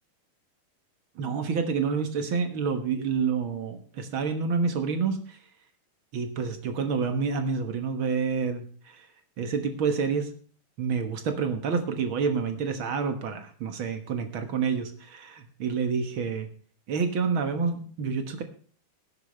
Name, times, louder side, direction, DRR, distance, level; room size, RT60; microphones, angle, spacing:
voice 1, 1.2-5.4 6.1-9.1 9.4-10.3 10.8-16.5 16.9-18.4, right 5 dB, 65° right, 7 dB, 1.2 m, -28 dB
18.5 x 10.5 x 3.2 m, 0.42 s
omnidirectional pair, 4.4 m